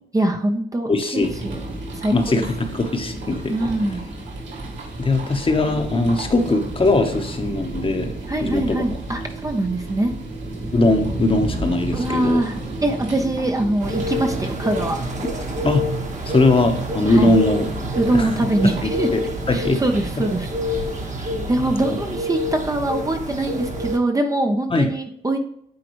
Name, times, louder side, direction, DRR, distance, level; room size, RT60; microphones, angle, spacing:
voice 1, 0.1-1.6 2.0-2.5 3.5-4.0 8.3-10.1 11.9-15.0 17.1-17.4 17.9-19.1 19.5-20.5 21.5-25.4, right 1 dB, 15° right, 4 dB, 0.8 m, -23 dB
voice 2, 0.9-1.3 2.1-3.5 5.0-8.1 8.4-8.8 10.7-12.4 15.6-15.8 16.3-17.7 18.1-18.3 18.8-19.2 19.5-19.8 21.2-21.3 24.7-24.9, left 2 dB, 25° left, 5 dB, 1.1 m, -20 dB
sound 1, 1.2-21.1, right 2 dB, 70° right, 2.9 m, -32 dB
sound 2, 13.8-24.0, equal, 40° right, 1.5 m, -28 dB
9.5 x 3.9 x 3.1 m, 0.70 s
cardioid pair, 90°, 20 cm